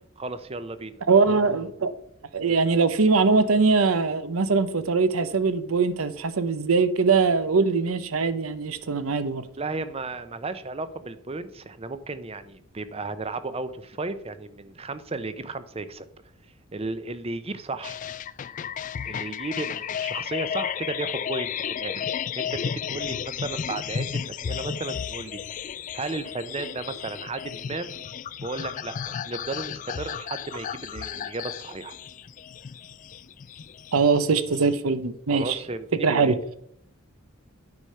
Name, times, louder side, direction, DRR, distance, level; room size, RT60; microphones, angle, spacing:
voice 1, 0.2-1.0 9.6-16.1 16.7-18.0 19.0-22.1 22.4-25.6 25.9-27.9 28.4-32.0 35.3-36.4, right 3 dB, 30° right, 0.6 m, -34 dB
voice 2, 1.1-1.9 2.3-9.4 33.9-35.6 36.0-36.3, right 4 dB, 85° right, 0.7 m, -22 dB
sound 1, 17.8-34.7, left 8 dB, 40° left, 0.3 m, -33 dB
9.6 x 5.0 x 5.6 m
head